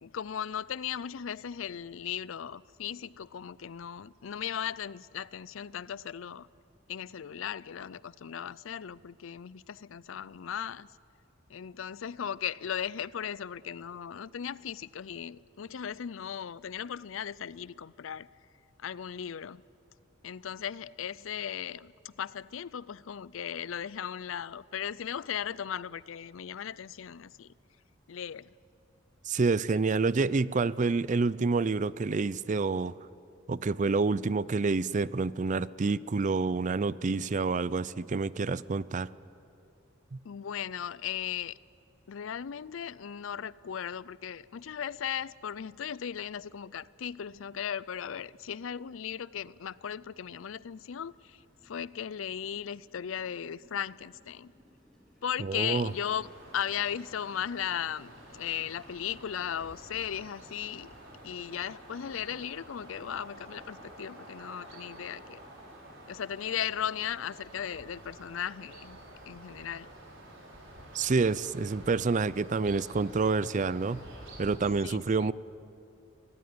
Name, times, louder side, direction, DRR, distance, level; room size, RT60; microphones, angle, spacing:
voice 1, 0.0-6.5 6.9-10.9 11.5-18.3 18.8-19.6 20.2-27.5 28.1-28.5 40.2-41.6 42.1-54.5 55.2-56.3 56.5-60.9 61.2-65.4 66.1-69.0 69.3-69.9 74.8-75.3, left 9 dB, 80° left, 0.5 m, -37 dB
voice 2, 29.2-32.9 33.5-39.1 40.1-40.2 55.4-55.9 70.9-74.0 74.4-75.3, right 4 dB, 40° right, 0.4 m, -28 dB
sound 1, 49.6-67.9, equal, 5° left, 4.4 m, -62 dB
sound 2, 55.7-74.5, right 1 dB, 70° right, 5.4 m, -50 dB
23.5 x 18.0 x 9.6 m
head